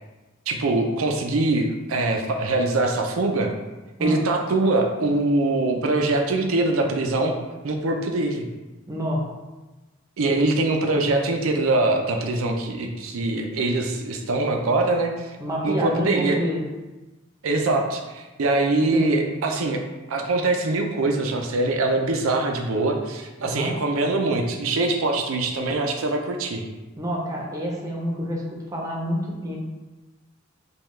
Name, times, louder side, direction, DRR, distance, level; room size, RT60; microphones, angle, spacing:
voice 1, 0.5-3.5 4.0-7.3 7.6-8.5 10.2-15.3 15.6-16.4 17.4-19.8 20.1-26.6, right 2 dB, 90° right, 3 dB, 0.5 m, -23 dB
voice 2, 8.9-9.3 15.4-16.7 18.9-19.3 23.4-23.7 27.0-29.6, equal, 15° right, -2 dB, 0.6 m, -28 dB
5.3 x 2.3 x 3.2 m, 1.2 s
head